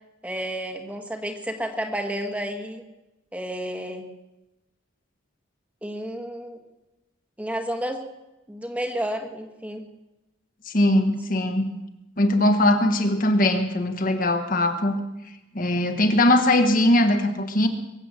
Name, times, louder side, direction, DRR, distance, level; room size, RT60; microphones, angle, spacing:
voice 1, 0.2-2.8 3.3-4.1 5.8-6.6 7.4-8.1 8.5-9.9, equal, 5° right, 4 dB, 1.5 m, -31 dB
voice 2, 10.7-11.7 12.2-15.0 15.5-17.7, left 1 dB, 40° left, 6 dB, 1.5 m, -20 dB
22.5 x 8.1 x 7.6 m, 0.98 s
head